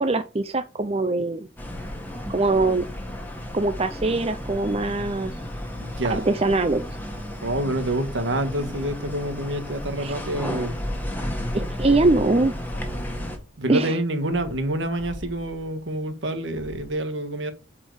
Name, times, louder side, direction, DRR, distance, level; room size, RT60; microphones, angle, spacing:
voice 1, 0.0-1.5 2.3-2.8 3.5-5.3 6.1-6.8 10.0-10.2 11.5-12.5 13.7-14.0, right 2 dB, 30° right, 0.6 m, -22 dB
sound 1, 1.6-13.4, left 1 dB, 10° left, 1.6 m, -33 dB
voice 2, 5.8-6.3 7.4-10.8 13.6-17.5, right 1 dB, 70° right, 1.6 m, -27 dB
sound 2, 12.7-17.0, equal, 65° left, 1.3 m, -43 dB
8.7 x 4.6 x 4.9 m
head